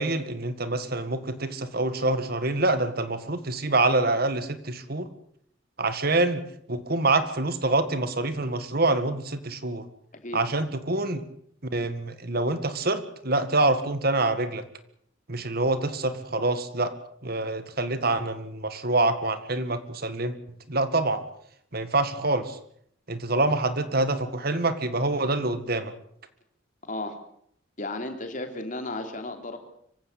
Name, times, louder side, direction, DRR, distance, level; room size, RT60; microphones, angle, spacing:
voice 1, 0.0-5.1 5.8-6.4 6.7-9.8 10.3-11.2 11.6-14.6 15.3-16.9 17.2-20.4 20.7-21.2 21.7-22.6 23.1-25.9, right 2 dB, 50° right, 11 dB, 1.9 m, -26 dB
voice 2, 26.9-27.2 27.8-29.6, left 2 dB, 40° left, 6 dB, 3.4 m, -34 dB
25.5 x 16.0 x 8.4 m, 0.66 s
head